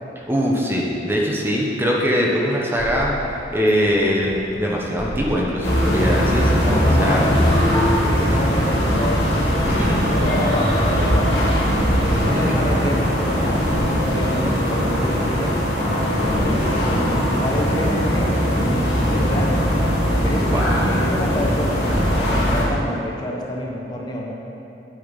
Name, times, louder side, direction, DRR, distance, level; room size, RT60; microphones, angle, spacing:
voice 1, 0.2-3.1 3.5-7.3 8.2-8.4 9.7-10.0 12.4-12.7 20.5-21.1, equal, 15° right, -3 dB, 1.0 m, -22 dB
sound 1, 2.8-18.2, equal, 40° right, 1.2 m, -36 dB
sound 2, 5.6-22.6, equal, 70° left, 2.3 m, -20 dB
voice 2, 6.8-9.2 9.6-11.5 12.1-15.5 16.0-19.7 20.2-24.3, left 1 dB, 25° left, -2 dB, 0.9 m, -28 dB
9.0 x 8.8 x 4.1 m, 2.8 s
head